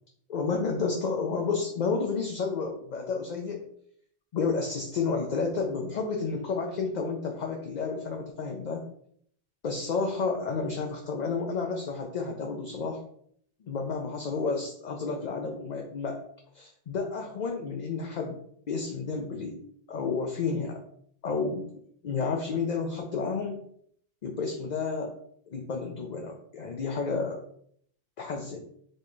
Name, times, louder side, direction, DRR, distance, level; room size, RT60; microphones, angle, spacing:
voice 1, 0.3-3.6 4.3-8.8 9.6-13.0 13.6-16.2 16.5-18.4 18.7-19.6 19.9-20.8 21.2-21.7 22.0-23.6 24.2-25.1 25.5-27.4 28.2-28.6, left 4 dB, 50° left, 2 dB, 0.6 m, -31 dB
4.4 x 3.4 x 3.1 m, 0.65 s
omnidirectional pair, 1.1 m